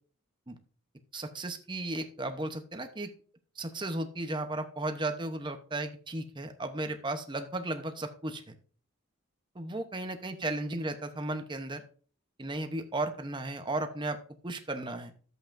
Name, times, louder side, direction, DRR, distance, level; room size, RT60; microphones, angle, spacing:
voice 1, 1.1-3.1 3.6-8.5 9.5-11.8 12.4-14.2 14.4-15.1, right 2 dB, 20° right, 7 dB, 0.9 m, -35 dB
11.5 x 8.0 x 2.6 m, 0.43 s
head